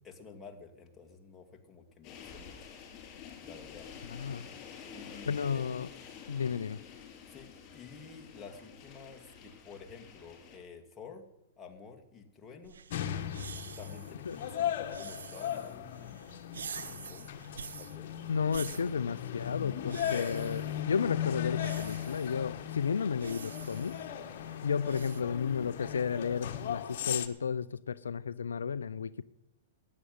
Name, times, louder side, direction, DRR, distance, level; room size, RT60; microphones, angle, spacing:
voice 1, 0.0-2.7 3.4-3.9 4.8-5.6 7.3-11.3 11.6-12.8 13.8-16.2 17.1-17.5 17.8-18.1 18.5-19.1, left 5 dB, 15° left, 1 dB, 2.4 m, -51 dB
sound 1, 2.0-10.6, left 7 dB, 40° left, 6.0 m, -49 dB
voice 2, 4.1-4.5 5.3-5.9 6.3-6.8 14.3-14.4 18.3-23.9 24.6-29.2, left 6 dB, 85° left, 16 dB, 0.4 m, -33 dB
sound 2, 12.6-25.2, right 6 dB, 80° right, 0.8 m, -48 dB
sound 3, 12.9-27.3, left 10 dB, 60° left, 1.4 m, -37 dB
14.0 x 9.7 x 9.4 m, 0.98 s
hypercardioid pair, 115°, 0 cm